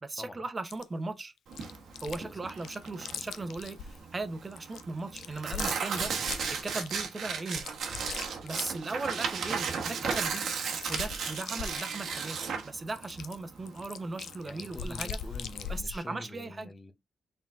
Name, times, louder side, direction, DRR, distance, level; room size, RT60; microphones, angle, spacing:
voice 1, 0.0-1.3 2.0-6.1 6.6-7.7 8.4-10.5 10.9-12.4 12.6-15.2 15.7-16.7, right 3 dB, 35° right, 0.9 m, -38 dB
Chewing mastication, 0.6-0.8 1.5-2.2 2.5-4.0 4.5-7.0 7.5-9.4 9.6-9.7 9.9-12.4 13.0-16.0, left 7 dB, 85° left, 0.4 m, -40 dB
Tearing, 1.5-15.8, right 6 dB, 75° right, 1.1 m, -35 dB
voice 2, 14.4-16.9, left 2 dB, 30° left, 1.2 m, -46 dB
4.3 x 3.9 x 2.5 m
cardioid pair, 60°, 0 cm